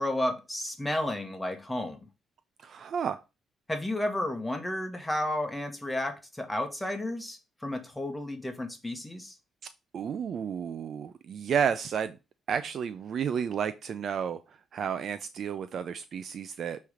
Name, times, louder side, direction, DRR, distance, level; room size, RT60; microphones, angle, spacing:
voice 1, 0.0-2.0 3.7-9.4, left 1 dB, 10° left, 1.3 m, -32 dB
voice 2, 2.6-3.2 9.9-12.2 12.5-14.4 14.7-16.8, right 7 dB, 60° right, 0.4 m, -31 dB
6.8 x 3.2 x 4.9 m
cardioid pair, 90°, 0 cm